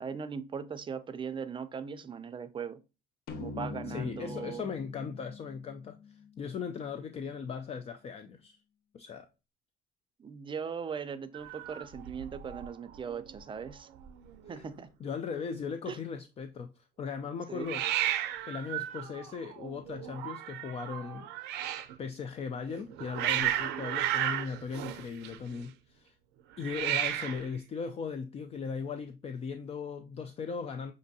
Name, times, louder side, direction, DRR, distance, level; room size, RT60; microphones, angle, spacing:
voice 1, 0.0-2.8 3.4-4.6 10.2-13.9 14.5-14.9 15.9-16.0 17.5-17.7, right 6 dB, 30° right, 0.4 m, -39 dB
sound 1, 3.3-6.8, left 4 dB, 65° left, 0.7 m, -43 dB
voice 2, 3.9-8.6 8.9-9.3 14.5-14.7 15.0-16.7 17.0-17.8 18.5-21.3 22.0-26.1 26.6-30.9, left 6 dB, 35° left, 0.4 m, -38 dB
Hiss, 11.3-12.7 12.9-13.4 13.7-13.8 13.9-14.6 17.6-21.9 22.7-25.6 26.6-27.5, right 12 dB, 90° right, 0.5 m, -34 dB
6.1 x 2.6 x 2.7 m
cardioid pair, 110°, 17 cm